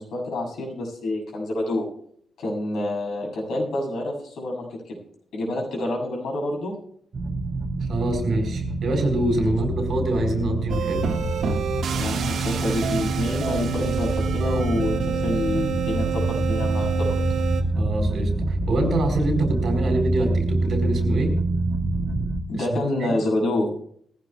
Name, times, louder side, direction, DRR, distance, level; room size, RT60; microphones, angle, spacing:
voice 1, 0.0-1.9 2.4-5.0 5.3-6.8 11.9-17.2 22.5-23.7, left 1 dB, 85° left, 0 dB, 7.1 m, -27 dB
sound 1, 7.1-22.4, right 2 dB, 35° right, 1.9 m, -26 dB
voice 2, 7.9-11.1 17.7-21.4 22.5-22.7 23.0-23.1, right 2 dB, 55° right, 4 dB, 4.5 m, -25 dB
sound 2, 10.7-17.6, right 7 dB, 80° right, 1.7 m, -29 dB
20.5 x 15.5 x 2.3 m, 0.64 s
wide cardioid pair, 175°, 0 cm